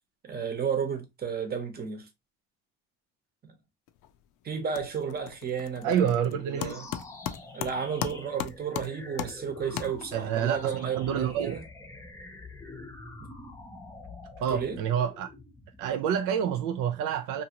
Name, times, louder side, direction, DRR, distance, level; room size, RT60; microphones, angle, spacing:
voice 1, 0.2-2.1 3.4-3.5 4.4-6.9 7.5-11.6 13.2-13.3 14.5-14.8, right 6 dB, 30° right, 0.9 m, -33 dB
sound 1, 3.9-4.3 4.5-10.4, left 11 dB, 75° left, 0.5 m, -38 dB
voice 2, 5.8-6.8 10.1-11.6 14.4-15.3 15.8-17.4, right 8 dB, 75° right, 0.5 m, -28 dB
sound 2, 6.5-16.0, left 2 dB, 10° left, 0.6 m, -46 dB
2.7 x 2.6 x 2.8 m
cardioid pair, 110°, 32 cm